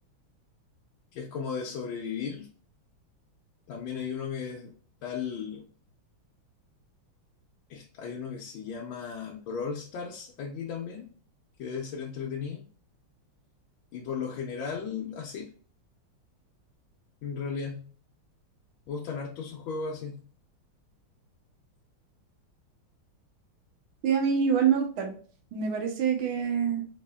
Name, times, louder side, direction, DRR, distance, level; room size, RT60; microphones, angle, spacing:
voice 1, 1.1-2.5 3.7-4.7 5.0-5.6 7.7-11.1 11.6-12.7 13.9-15.5 17.2-17.9 18.9-20.2, left 6 dB, 75° left, 1.4 m, -35 dB
voice 2, 24.0-25.1 25.5-26.9, right 7 dB, 85° right, 1.8 m, -26 dB
4.8 x 3.1 x 2.2 m
omnidirectional pair, 2.3 m